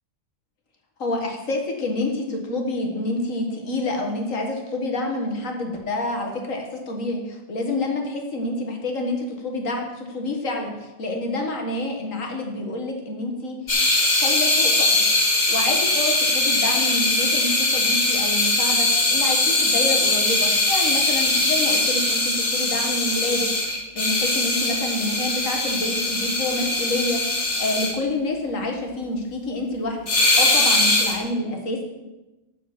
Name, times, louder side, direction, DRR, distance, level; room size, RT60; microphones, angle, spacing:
voice 1, 1.0-13.8 14.1-14.9 15.5-30.1 30.4-31.8, left 2 dB, 85° left, 2 dB, 2.0 m, -28 dB
sound 1, 13.7-27.9 30.1-31.1, left 2 dB, 60° left, 2.1 m, -21 dB
7.7 x 6.9 x 7.3 m, 1.1 s
omnidirectional pair, 1.3 m